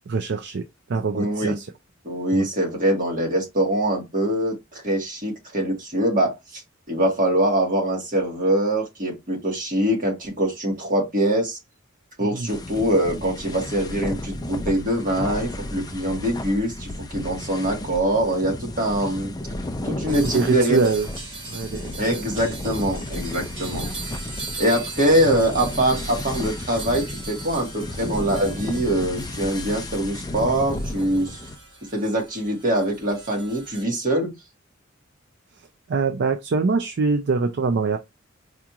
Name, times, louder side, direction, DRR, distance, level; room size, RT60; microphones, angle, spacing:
voice 1, 0.1-0.6 0.9-1.7 2.3-2.5 12.2-12.5 20.0-21.1 21.5-22.2 25.2-25.4 35.9-38.0, right 4 dB, 60° right, 0.4 m, -24 dB
voice 2, 1.1-1.6 2.0-6.6 6.9-11.6 12.2-19.3 19.8-20.8 22.0-23.9 24.6-31.4 31.9-34.3, right 1 dB, 40° right, 1.6 m, -23 dB
sound 1, 12.5-31.6, left 1 dB, 20° left, 0.5 m, -33 dB
sound 2, 20.1-33.8, right 3 dB, 25° right, 1.4 m, -39 dB
4.8 x 2.9 x 2.4 m
head